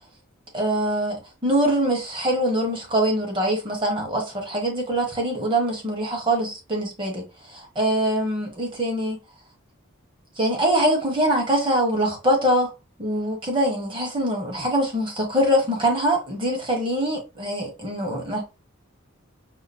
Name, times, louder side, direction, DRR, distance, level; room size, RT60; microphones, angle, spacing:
voice 1, 0.5-7.2 7.5-9.2 10.4-12.7 13.0-18.4, right 1 dB, 25° right, 1.3 m, -23 dB
5.1 x 2.1 x 4.2 m
head